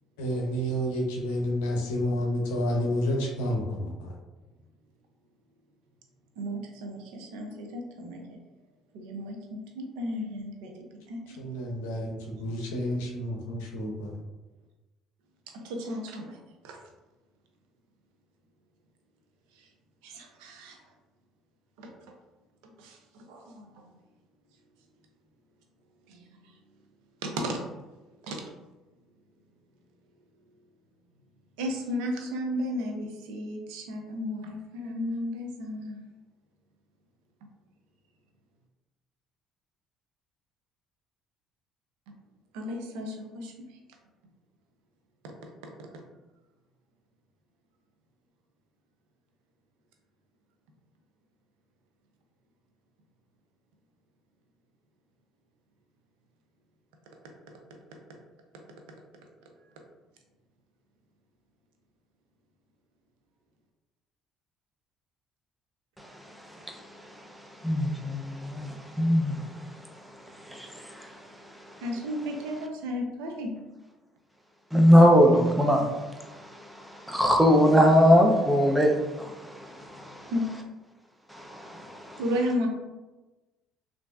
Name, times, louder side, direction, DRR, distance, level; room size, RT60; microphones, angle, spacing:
voice 1, 0.2-4.1 11.4-14.2, equal, 90° left, 0.6 m, -30 dB
voice 2, 6.4-8.4 8.9-10.7 11.1-11.4 15.5-16.4 16.6-16.8 19.5-19.7 20.0-20.8 21.8-21.9 22.8-23.9 26.1-26.6 27.2-27.6 28.2-28.4 31.6-36.0 42.5-43.8 45.2-45.3 45.8-46.0 71.8-73.5 80.3-80.5 82.2-82.7, equal, 85° right, 0.5 m, -34 dB
voice 3, 66.7-67.3 67.6-69.6 70.4-71.2 74.7-75.9 76.1-80.3 81.3-82.2, equal, 5° right, 0.5 m, -22 dB
3.1 x 2.5 x 2.3 m
supercardioid pair, 75°, 0 cm